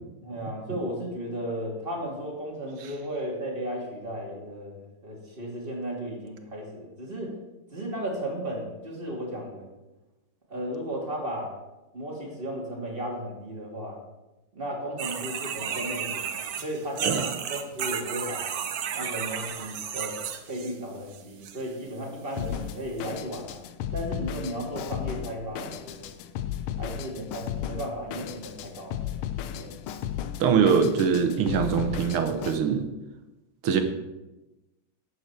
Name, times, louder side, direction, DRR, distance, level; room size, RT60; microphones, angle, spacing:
voice 1, 0.2-7.4 7.7-9.7 10.5-11.5 11.9-14.0 14.5-18.5 18.9-20.2 20.5-23.6 23.9-26.0 26.8-29.0 29.5-29.7, equal, 25° right, -1 dB, 2.4 m, -35 dB
sound 1, 15.0-20.8 21.1-21.6 22.3-22.4 23.0-23.1, right 8 dB, 60° right, 1.0 m, -33 dB
Drum kit, 22.4-32.6, left 10 dB, 80° left, 1.5 m, -35 dB
voice 2, 30.4-32.9 33.6-33.8, right 6 dB, 85° right, 7 dB, 1.9 m, -23 dB
11.5 x 8.3 x 4.5 m, 1.0 s
omnidirectional pair, 2.4 m